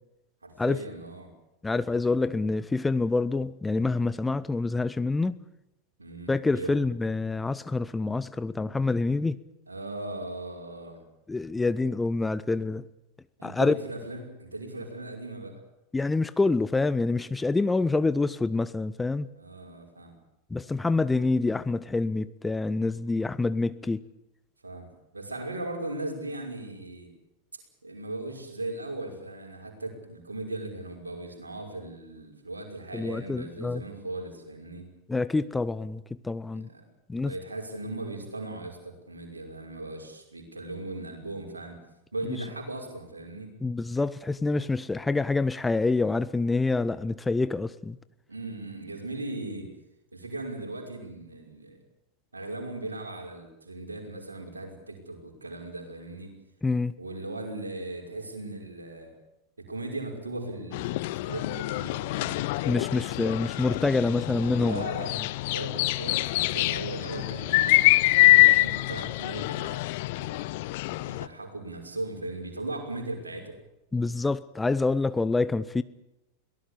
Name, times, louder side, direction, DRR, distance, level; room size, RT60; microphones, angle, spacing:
voice 1, 0.4-1.3 6.0-6.9 9.7-11.0 13.4-15.5 19.4-20.2 24.6-24.9 25.1-27.1 27.8-34.9 36.5-36.8 37.2-41.8 42.1-43.5 48.3-49.7 50.1-51.8 52.3-56.3 57.0-59.1 59.6-62.4 64.6-65.1 65.5-67.8 68.2-69.8 70.1-70.4 70.9-73.5 74.0-74.1, right 2 dB, 80° right, 5.8 m, -38 dB
voice 2, 1.6-5.4 6.3-9.4 11.3-12.8 13.4-13.7 15.9-19.3 20.5-24.0 32.9-33.8 35.1-36.7 37.1-37.3 42.3-42.4 43.6-48.0 56.6-56.9 62.7-64.8 73.9-75.8, left 3 dB, 10° left, 0.8 m, -26 dB
sound 1, 60.7-71.3, left 19 dB, 50° left, 0.8 m, -25 dB
23.5 x 18.0 x 8.5 m
figure-of-eight pair, 90°, 0 cm